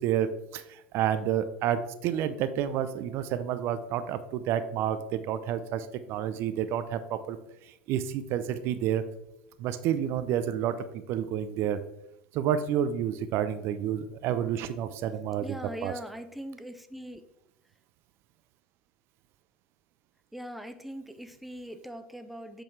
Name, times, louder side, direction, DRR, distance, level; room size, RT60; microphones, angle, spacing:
voice 1, 0.0-7.4 7.7-9.0 9.6-11.8 12.3-15.5 15.8-15.9, right 10 dB, 50° right, 12 dB, 0.5 m, -29 dB
voice 2, 15.4-17.2 20.3-22.6, equal, ahead, 9 dB, 0.7 m, -41 dB
8.0 x 6.2 x 3.3 m, 0.86 s
hypercardioid pair, 80°, 5 cm